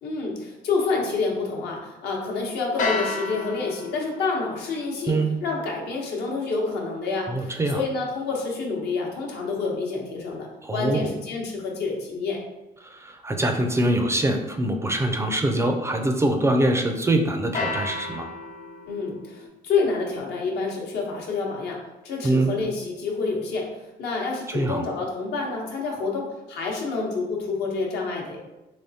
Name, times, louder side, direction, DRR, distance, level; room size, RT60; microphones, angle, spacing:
voice 1, 0.0-12.4 18.9-21.8 22.0-23.7 24.0-28.4, left 4 dB, 75° left, -1 dB, 0.9 m, -28 dB
sound 1, 2.8-8.9 17.5-19.5, left 3 dB, 50° left, 0.7 m, -34 dB
voice 2, 7.3-7.8 10.6-11.1 12.8-18.3 22.2-22.5 24.5-24.8, right 1 dB, 15° right, 4 dB, 0.3 m, -24 dB
3.4 x 3.1 x 2.7 m, 1.0 s
cardioid pair, 110°, 17 cm